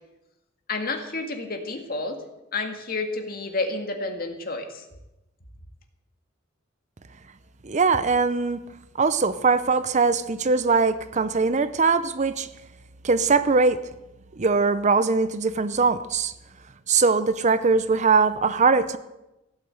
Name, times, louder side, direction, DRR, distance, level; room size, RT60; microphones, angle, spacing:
voice 1, 0.7-2.2 2.5-4.8, left 3 dB, 50° left, 4 dB, 2.1 m, -30 dB
voice 2, 7.6-8.6 9.0-12.5 13.0-13.8 14.4-16.3 16.9-19.0, right 4 dB, 40° right, 13 dB, 0.7 m, -21 dB
16.5 x 8.8 x 7.8 m, 0.96 s
head